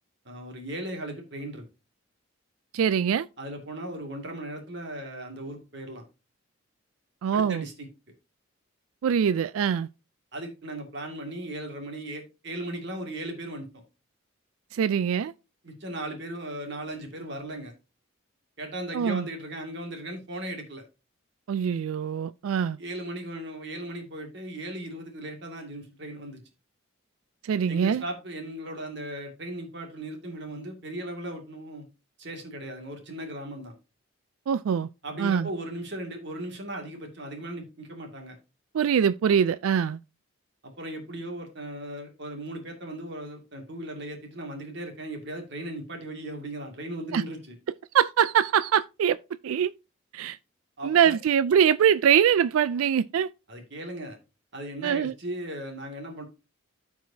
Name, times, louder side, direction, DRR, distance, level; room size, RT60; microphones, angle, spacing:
voice 1, 0.2-1.6 3.4-6.0 7.3-7.9 10.3-13.7 15.6-17.7 18.6-20.8 22.8-26.4 27.7-31.8 32.2-33.7 35.0-38.4 40.6-47.5 50.8-51.2 53.5-54.2 54.5-56.2, right 1 dB, 55° right, 2.2 m, -37 dB
voice 2, 2.7-3.3 7.2-7.6 9.0-9.9 14.7-15.3 18.9-19.3 21.5-22.8 27.4-28.0 34.5-34.9 35.2-35.5 38.7-40.0 47.1-47.2 47.9-49.2 49.4-49.7 50.1-50.4 50.8-53.3 54.8-55.1, right 8 dB, 85° right, 0.3 m, -23 dB
14.5 x 4.8 x 2.7 m
head